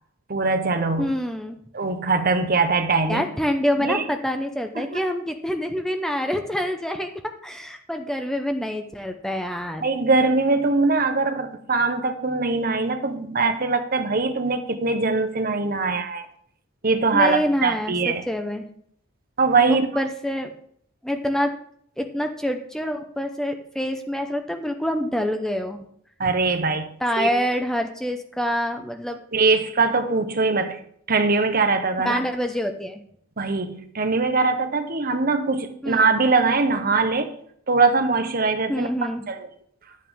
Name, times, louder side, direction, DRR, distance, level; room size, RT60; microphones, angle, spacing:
voice 1, 0.3-1.1 1.7-3.2 3.8-4.1 4.8-5.0 9.8-16.3 16.8-18.2 19.4-19.9 26.2-26.9 27.2-27.3 29.3-30.8 31.1-32.2 33.4-37.3 37.7-38.9 39.3-39.5, right 3 dB, 45° right, 8 dB, 0.9 m, -22 dB
voice 2, 1.0-1.6 3.1-7.1 7.4-9.8 17.1-18.7 19.7-20.5 21.0-21.5 22.0-25.8 27.0-29.2 32.0-33.0 35.8-36.2 38.7-39.3, equal, 5° left, 5 dB, 0.7 m, -26 dB
11.5 x 8.5 x 3.6 m, 0.65 s
head